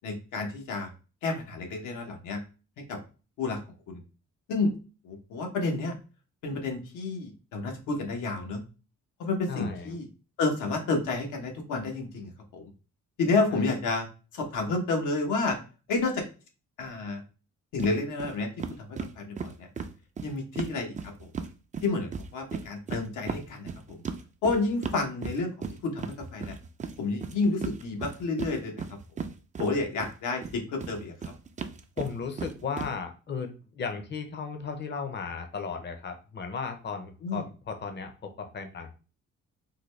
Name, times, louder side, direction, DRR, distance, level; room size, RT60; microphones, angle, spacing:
voice 1, 0.0-0.9 1.2-2.4 2.9-3.0 3.4-3.6 3.9-4.0 4.5-4.7 5.0-6.0 6.4-8.6 9.2-10.0 10.4-12.7 13.2-14.1 14.3-15.6 15.9-16.2 16.8-17.2 17.7-18.5 18.8-18.9 19.2-19.7 20.2-21.3 21.8-24.0 24.4-26.5 27.0-28.8 29.6-31.1 37.2-37.4, left 3 dB, 85° left, 3 dB, 1.0 m, -30 dB
voice 2, 9.5-10.0 13.5-13.7 32.0-38.9, left 5 dB, 35° left, 6 dB, 0.7 m, -35 dB
sound 1, 17.8-17.9 18.2-18.3 18.6-21.5 21.7-30.1 30.4-32.9, right 5 dB, 25° right, 0.4 m, -36 dB
3.8 x 2.2 x 3.2 m, 0.34 s
cardioid pair, 90°, 30 cm